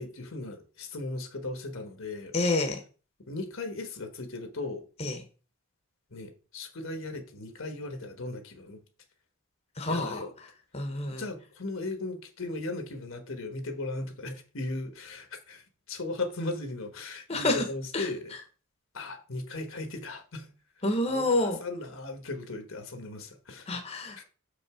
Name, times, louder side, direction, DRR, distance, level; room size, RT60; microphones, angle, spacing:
voice 1, 0.0-2.3 3.3-4.8 6.1-8.8 9.8-10.3 11.1-18.3 18.9-20.5 21.1-23.8 24.2-24.3, left 2 dB, 65° left, 1.3 m, -37 dB
voice 2, 2.3-2.8 5.0-5.2 9.8-10.2 10.7-11.2 17.3-17.6 17.9-18.0 20.8-21.6 23.7-24.2, left 2 dB, 30° left, 1.0 m, -28 dB
6.6 x 5.4 x 4.9 m
head